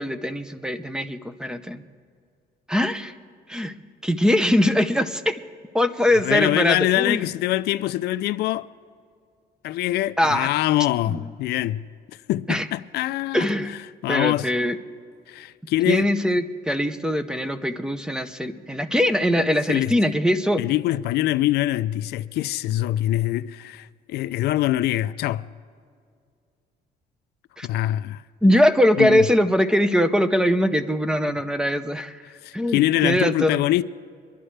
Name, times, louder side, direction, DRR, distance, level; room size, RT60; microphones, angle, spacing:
voice 1, 0.0-1.8 2.7-3.1 3.5-3.7 4.0-5.4 5.7-7.2 10.2-10.5 11.1-11.2 12.5-12.7 13.3-13.7 14.1-14.8 15.9-20.6 27.6-27.7 28.4-32.2 32.5-33.6, equal, 5° right, 0.7 m, -21 dB
voice 2, 6.2-8.7 9.6-11.8 12.3-13.5 14.0-14.5 15.3-16.1 19.7-19.9 20.6-25.5 27.6-28.5 29.0-29.2 32.4-33.8, left 15 dB, 75° left, 0.4 m, -24 dB
25.5 x 11.0 x 3.3 m
cardioid pair, 110°, 17 cm